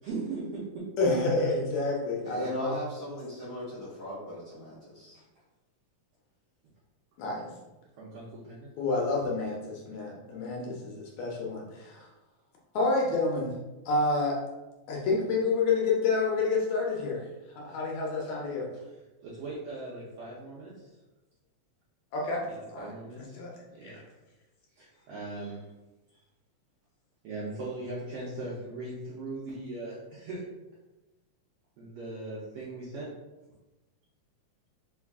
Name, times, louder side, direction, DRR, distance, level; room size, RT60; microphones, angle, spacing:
voice 1, 0.0-0.8 5.1-5.2 8.0-8.7 19.2-20.9 22.5-23.4 23.7-24.0 24.8-25.6 27.2-30.4 31.8-33.1, right 2 dB, 75° right, -7 dB, 1.4 m, -39 dB
voice 2, 1.0-2.7 7.2-7.5 8.8-12.1 12.7-13.5 13.9-14.4 14.9-17.3 17.6-18.7 22.1-22.4 22.7-22.9 23.2-23.5 23.8-24.0, left 3 dB, 75° left, -2 dB, 1.8 m, -29 dB
voice 3, 2.2-5.2, equal, 50° left, -9 dB, 1.2 m, -39 dB
4.6 x 2.4 x 3.5 m, 1.1 s
omnidirectional pair, 3.4 m